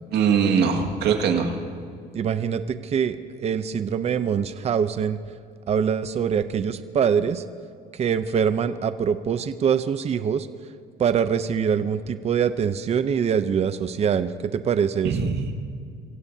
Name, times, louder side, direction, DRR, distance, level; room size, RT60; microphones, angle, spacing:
voice 1, 0.1-1.5 15.0-15.5, right 6 dB, 75° right, 3 dB, 1.9 m, -21 dB
voice 2, 2.1-5.2 5.7-7.4 7.9-10.5 11.0-15.3, right 7 dB, 40° right, 11 dB, 0.6 m, -24 dB
24.5 x 16.0 x 2.8 m, 2.3 s
cardioid pair, 110°, 17 cm